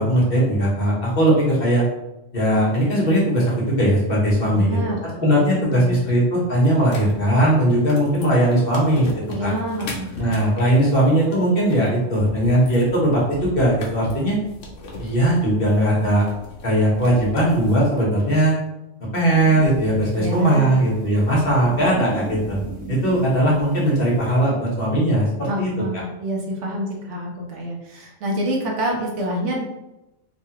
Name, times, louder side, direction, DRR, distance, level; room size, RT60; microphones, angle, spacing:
voice 1, 0.0-1.8 2.3-9.1 9.4-9.5 10.2-14.4 15.0-16.2 16.6-18.5 19.1-22.6 22.9-26.0, right 1 dB, 50° left, -4 dB, 1.1 m, -19 dB
voice 2, 4.4-5.0 5.3-6.1 9.3-10.4 20.2-20.8 25.5-29.6, equal, 75° right, -1 dB, 1.0 m, -27 dB
sound 1, 6.8-17.8, left 1 dB, 80° left, 1.0 m, -38 dB
sound 2, 19.3-24.4, right 2 dB, 15° right, 0.3 m, -37 dB
3.1 x 2.3 x 2.8 m, 0.94 s
omnidirectional pair, 1.3 m